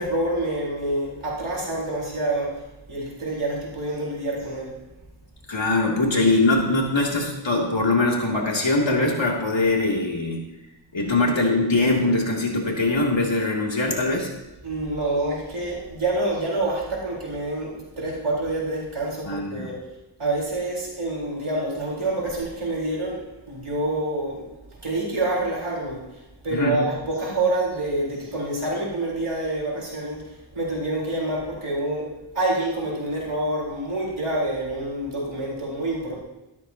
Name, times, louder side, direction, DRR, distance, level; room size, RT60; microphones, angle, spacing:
voice 1, 0.0-2.6 2.9-4.8 14.6-19.7 20.2-24.5 24.8-26.0 26.4-30.2 30.5-32.1 32.3-36.2, right 2 dB, 80° right, -4 dB, 4.3 m, -27 dB
voice 2, 5.5-10.4 10.9-14.3 19.3-19.7 26.5-26.8, left 2 dB, 65° left, -1 dB, 2.8 m, -22 dB
13.5 x 12.5 x 2.9 m, 1.0 s
wide cardioid pair, 40°, 49 cm